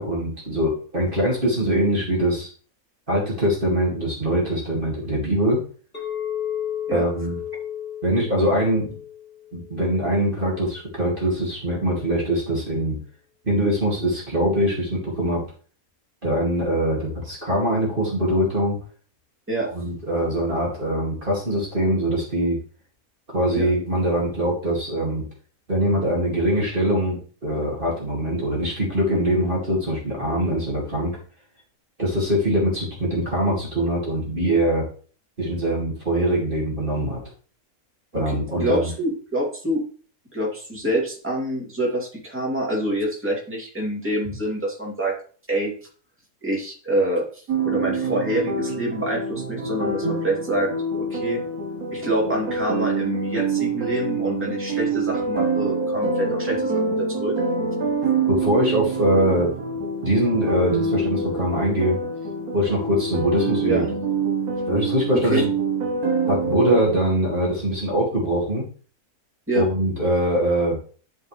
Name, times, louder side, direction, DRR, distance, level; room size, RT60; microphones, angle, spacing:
voice 1, 0.0-2.5 3.1-5.6 6.9-7.4 8.0-8.9 9.5-13.0 13.4-15.4 16.2-18.8 19.6-22.6 23.3-25.2 25.7-31.1 32.0-34.8 35.4-37.2 38.1-38.9 58.3-59.5 60.0-62.0 62.5-63.8 64.7-65.5 66.3-68.7 69.5-70.8, right 1 dB, 35° right, -4 dB, 2.4 m, -23 dB
Chink clink, 5.9-10.2, left 10 dB, 35° left, 2.3 m, -33 dB
voice 2, 38.1-39.8 40.3-45.1 45.5-45.7 46.4-50.7 51.0-51.4 51.9-57.3 63.6-63.9 65.1-65.4 69.5-69.7, right 1 dB, 10° right, -3 dB, 2.5 m, -26 dB
sound 1, 47.5-66.8, right 3 dB, 75° right, 1.6 m, -26 dB
11.5 x 4.6 x 3.3 m, 0.41 s
omnidirectional pair, 1.6 m